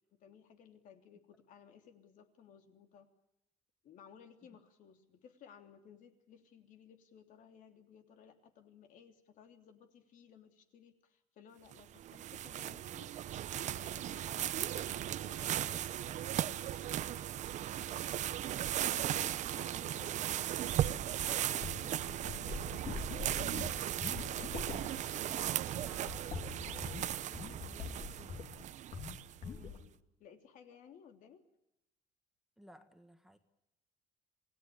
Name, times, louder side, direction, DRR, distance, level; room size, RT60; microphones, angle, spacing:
voice 1, 0.1-3.1 3.8-13.1 13.4-16.1 18.7-23.9 29.4-29.9 30.2-31.4, left 8 dB, 55° left, 6 dB, 3.1 m, -58 dB
sound 1, 11.7-29.5, right 11 dB, 50° right, 0.9 m, -37 dB
sound 2, 21.2-28.6 28.9-29.2 29.4-29.9, left 5 dB, 40° left, 3.0 m, -44 dB
voice 2, 25.2-28.4 32.6-33.4, equal, ahead, 7 dB, 1.7 m, -58 dB
27.5 x 18.5 x 8.6 m, 0.84 s
cardioid pair, 145°, 16 cm